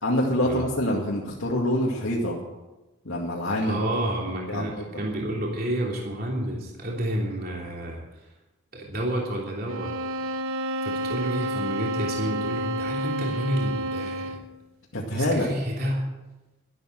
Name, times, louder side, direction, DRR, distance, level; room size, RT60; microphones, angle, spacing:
voice 1, 0.0-2.4 3.0-3.8 4.5-4.8 14.9-15.5, left 1 dB, 75° left, -3 dB, 2.2 m, -25 dB
voice 2, 3.6-8.2 8.7-9.9 10.8-14.4 15.1-16.1, right 1 dB, 45° right, -2 dB, 3.2 m, -30 dB
sound 1, 9.7-14.6, equal, 80° right, 1.0 m, -30 dB
12.5 x 12.5 x 7.7 m, 1.1 s
head